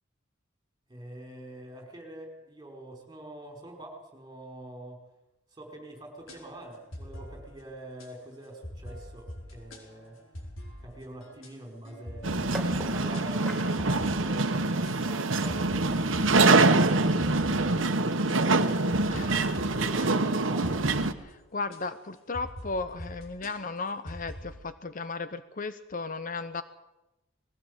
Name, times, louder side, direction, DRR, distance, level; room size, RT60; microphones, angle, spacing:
voice 1, 0.9-5.0 5.5-10.2 10.8-12.5 12.9-17.8 18.4-20.9, right 1 dB, 20° right, 2 dB, 4.9 m, -45 dB
sound 1, 6.2-21.8 22.3-24.6, equal, 90° left, 4.9 m, -45 dB
sound 2, 12.2-21.1, right 3 dB, 80° right, 1.3 m, -25 dB
sound 3, 12.5-18.4, equal, 5° left, 4.0 m, -43 dB
voice 2, 19.1-19.4 21.3-26.6, left 3 dB, 45° left, 11 dB, 0.8 m, -35 dB
20.5 x 16.0 x 8.1 m, 0.96 s
head